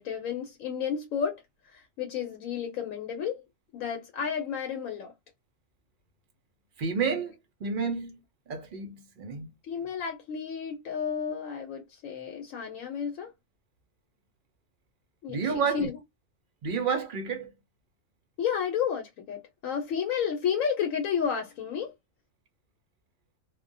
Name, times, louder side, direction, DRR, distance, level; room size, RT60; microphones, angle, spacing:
voice 1, 0.0-3.4 3.7-5.1 9.6-13.3 15.2-15.4 15.7-15.9 18.4-21.9, left 7 dB, 75° left, 1.0 m, -31 dB
voice 2, 6.8-7.3 7.6-8.2 8.5-9.5 15.3-15.9 16.6-17.5, right 5 dB, 60° right, 0.5 m, -30 dB
2.3 x 2.1 x 2.5 m
omnidirectional pair, 1.4 m